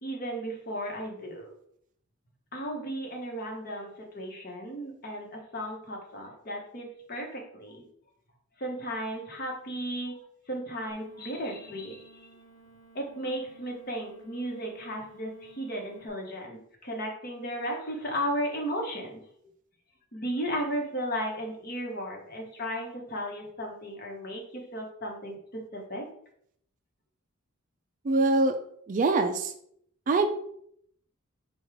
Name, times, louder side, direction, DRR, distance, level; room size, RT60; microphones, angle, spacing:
voice 1, 0.0-1.5 2.5-7.8 8.6-10.2 10.5-12.3 12.9-19.2 20.1-26.0, equal, 45° left, 1 dB, 1.0 m, -35 dB
sound 1, 10.9-16.1, right 3 dB, 10° right, 1.6 m, -56 dB
voice 2, 28.0-28.6 28.9-29.5 30.1-30.3, right 3 dB, 40° right, 7 dB, 0.3 m, -23 dB
4.8 x 2.3 x 4.8 m, 0.68 s
head